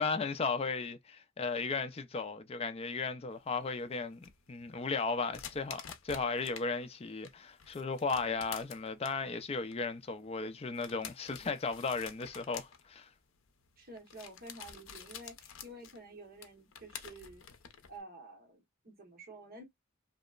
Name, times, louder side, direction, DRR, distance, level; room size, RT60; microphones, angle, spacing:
voice 1, 0.0-13.1, left 4 dB, 30° left, 0.4 m, -35 dB
sound 1, 3.4-6.7 7.0-18.0, left 8 dB, 80° left, 0.6 m, -50 dB
voice 2, 13.8-17.4 17.9-19.6, right 2 dB, 50° right, 1.0 m, -50 dB
2.9 x 2.0 x 2.3 m
head